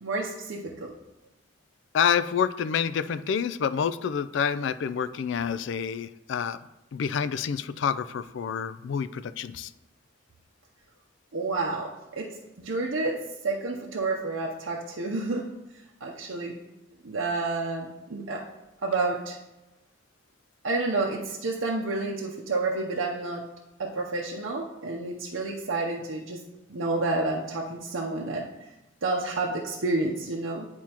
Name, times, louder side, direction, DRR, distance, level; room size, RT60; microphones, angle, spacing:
voice 1, 0.0-0.9 11.3-15.5 16.0-16.6 17.0-18.5 18.8-19.4 20.6-23.5 23.8-28.5 29.0-30.7, right 3 dB, 75° right, -1 dB, 0.7 m, -30 dB
voice 2, 1.9-6.6 6.9-9.7, left 7 dB, 65° left, 13 dB, 0.3 m, -28 dB
10.5 x 4.3 x 2.9 m, 0.98 s
head